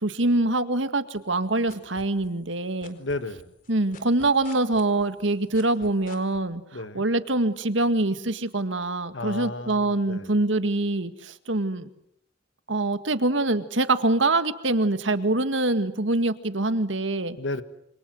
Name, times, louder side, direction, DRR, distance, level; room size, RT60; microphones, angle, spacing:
voice 1, 0.0-3.0 3.7-6.6 6.9-11.9 12.7-17.4, right 2 dB, 85° right, 10 dB, 2.0 m, -24 dB
sound 1, 1.1-2.5 2.8-6.4, left 3 dB, 50° left, 4.4 m, -46 dB
voice 2, 3.0-3.5 6.7-7.0 9.1-10.3 17.4-17.6, left 2 dB, 85° left, 11 dB, 1.8 m, -33 dB
27.5 x 27.0 x 7.9 m, 0.75 s
head